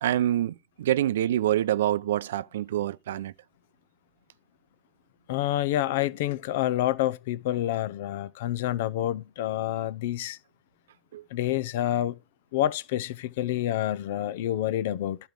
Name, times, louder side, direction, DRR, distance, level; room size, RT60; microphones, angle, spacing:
voice 1, 0.0-3.3 11.1-11.2, right 12 dB, 80° right, 0.4 m, -26 dB
voice 2, 5.3-10.4 11.3-12.1 12.5-15.2, left 13 dB, 65° left, 0.7 m, -28 dB
11.5 x 4.5 x 5.2 m
supercardioid pair, 140°, 0 cm